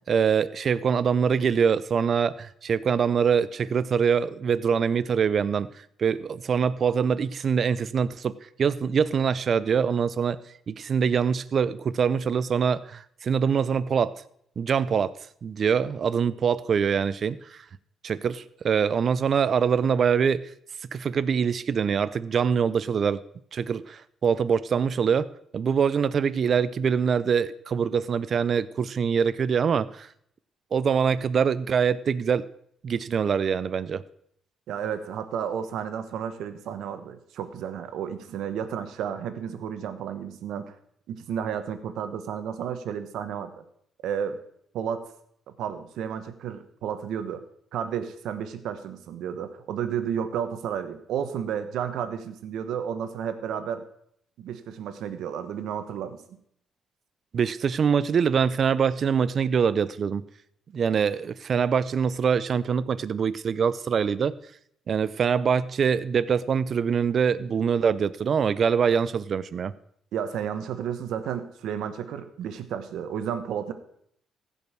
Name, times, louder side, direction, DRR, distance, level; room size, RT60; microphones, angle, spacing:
voice 1, 0.1-5.7 6.0-10.4 10.7-14.1 14.6-15.1 15.4-17.6 18.0-20.5 20.9-23.2 23.5-25.3 25.5-30.1 30.7-32.5 32.8-34.0 57.3-60.2 60.7-64.4 64.9-69.7, right 6 dB, 50° right, 17 dB, 0.5 m, -24 dB
voice 2, 34.7-40.7 41.1-43.6 44.0-44.4 44.7-45.1 45.6-47.4 47.7-53.8 54.4-56.4 70.1-73.7, right 8 dB, 80° right, 10 dB, 1.1 m, -32 dB
15.5 x 5.4 x 6.1 m, 0.68 s
cardioid pair, 90°, 0 cm